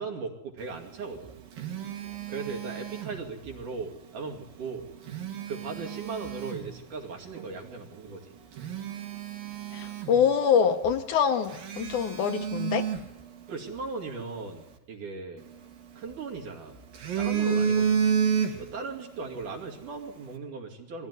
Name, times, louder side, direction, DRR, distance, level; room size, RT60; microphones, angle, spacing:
voice 1, 0.0-1.3 2.3-4.9 5.5-8.3 13.5-15.5 16.0-16.8 17.1-18.0 18.6-21.1, right 4 dB, 65° right, 0 dB, 3.9 m, -38 dB
Telephone, 1.0-3.6 4.8-6.7 7.4-7.5 8.1-8.2 8.5-10.6 10.8-11.0 11.5-13.9 15.4-16.4 16.8-18.9 19.2-19.4, right 7 dB, 85° right, 3.8 m, -30 dB
voice 2, 9.7-12.9, left 7 dB, 70° left, 7 dB, 2.1 m, -25 dB
22.5 x 16.0 x 9.6 m, 0.93 s
omnidirectional pair, 4.0 m